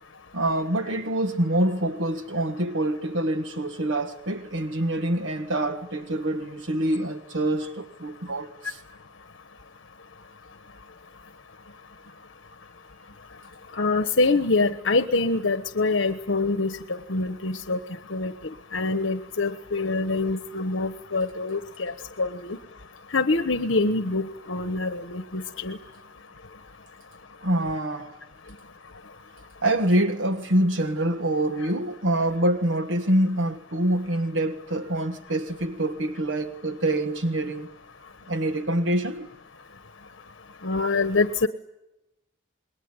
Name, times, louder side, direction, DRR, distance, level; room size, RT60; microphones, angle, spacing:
voice 1, 0.3-8.8 27.4-28.1 29.6-37.7 38.3-39.3, right 1 dB, 80° right, 1.5 m, -25 dB
voice 2, 13.8-16.8 17.1-17.8 18.1-18.3 18.7-21.9 22.2-22.6 23.1-25.8 40.6-41.5, left 3 dB, 75° left, 1.3 m, -25 dB
28.0 x 21.5 x 9.8 m
head